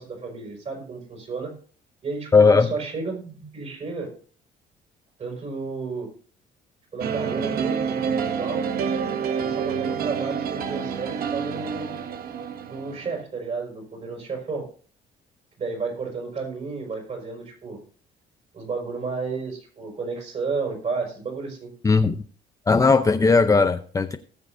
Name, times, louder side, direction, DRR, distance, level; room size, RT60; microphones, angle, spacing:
voice 1, 0.0-1.5 2.0-4.1 5.2-6.1 6.9-8.7 9.4-11.9 12.7-14.7 15.6-17.8 18.5-21.7, right 4 dB, 40° right, 5.9 m, -32 dB
voice 2, 2.3-2.7 21.8-22.2 22.7-24.2, left 4 dB, 20° left, 0.7 m, -17 dB
sound 1, 7.0-13.2, right 7 dB, 60° right, 1.1 m, -28 dB
19.0 x 7.1 x 2.7 m
cardioid pair, 110°, 17 cm